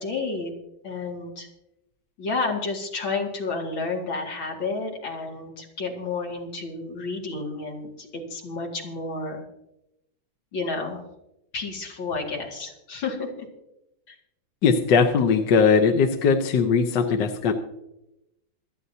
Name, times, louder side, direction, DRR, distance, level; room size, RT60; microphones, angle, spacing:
voice 1, 0.0-0.5 0.8-1.5 2.2-9.4 10.5-11.0 11.5-13.5 14.1-14.2, left 3 dB, 90° left, 0 dB, 3.1 m, -31 dB
voice 2, 14.6-17.5, left 5 dB, 70° left, 5 dB, 1.6 m, -20 dB
27.0 x 9.2 x 2.8 m, 0.87 s
omnidirectional pair, 2.1 m